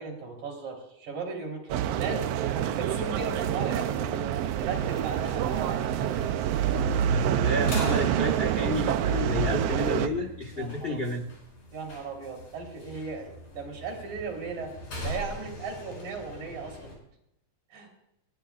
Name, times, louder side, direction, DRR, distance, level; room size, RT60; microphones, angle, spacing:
voice 1, 0.0-6.0 10.5-11.1 11.7-14.7 15.0-16.9 17.7-17.9, right 4 dB, 65° right, 1 dB, 4.8 m, -37 dB
sound 1, 1.7-10.1, right 9 dB, 80° right, 1.4 m, -27 dB
sound 2, 4.6-17.0, left 1 dB, 70° left, 6.9 m, -43 dB
voice 2, 7.1-11.2, left 1 dB, 45° left, 3 dB, 0.7 m, -31 dB
20.5 x 17.5 x 2.4 m, 0.79 s
omnidirectional pair, 3.6 m